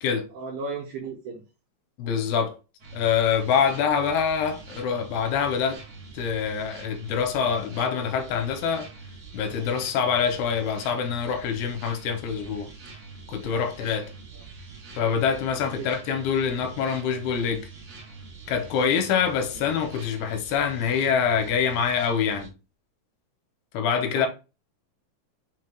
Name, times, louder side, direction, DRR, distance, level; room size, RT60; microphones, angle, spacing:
voice 1, 0.3-1.4 14.3-14.4 19.5-19.6 24.0-24.3, right 4 dB, 75° right, 2.6 m, -35 dB
voice 2, 2.0-2.6 2.9-5.8 6.1-8.9 9.3-12.7 13.3-14.1 15.0-17.7 18.5-22.5 23.7-24.3, left 7 dB, 85° left, 2.7 m, -25 dB
sound 1, 2.8-22.5, right 4 dB, 55° right, 2.0 m, -44 dB
6.1 x 3.2 x 2.3 m
omnidirectional pair, 4.6 m